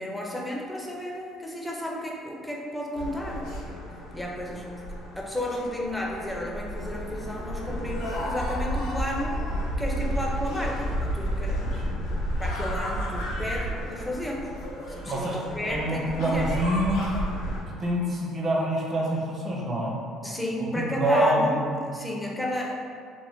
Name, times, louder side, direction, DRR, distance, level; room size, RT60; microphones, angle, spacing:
voice 1, 0.0-3.5 4.1-4.7 5.2-9.4 9.8-11.7 12.4-16.5 20.2-21.5 21.9-23.0, left 1 dB, 5° left, -2 dB, 0.5 m, -32 dB
sound 1, 2.9-17.6, equal, 80° left, 0.5 m, -32 dB
voice 2, 15.0-15.4 15.7-17.1 17.7-19.9 20.6-21.9, right 1 dB, 35° right, -3 dB, 0.6 m, -26 dB
2.5 x 2.1 x 3.4 m, 2.3 s
cardioid pair, 100°, 0 cm